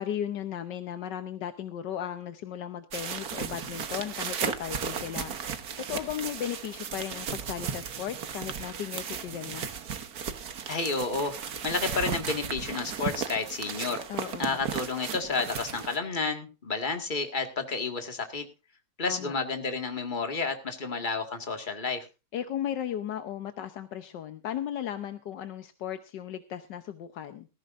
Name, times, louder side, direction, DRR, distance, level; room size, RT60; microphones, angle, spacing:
voice 1, 0.0-5.3 5.8-9.7 14.1-14.6 19.1-19.3 22.3-27.5, left 10 dB, 85° left, 9 dB, 1.6 m, -36 dB
sound 1, 2.9-16.0, right 7 dB, 60° right, 1.7 m, -35 dB
voice 2, 10.7-14.0 14.4-18.5 19.0-22.1, left 4 dB, 30° left, 5 dB, 2.0 m, -31 dB
19.0 x 14.5 x 2.6 m, 0.30 s
omnidirectional pair, 1.8 m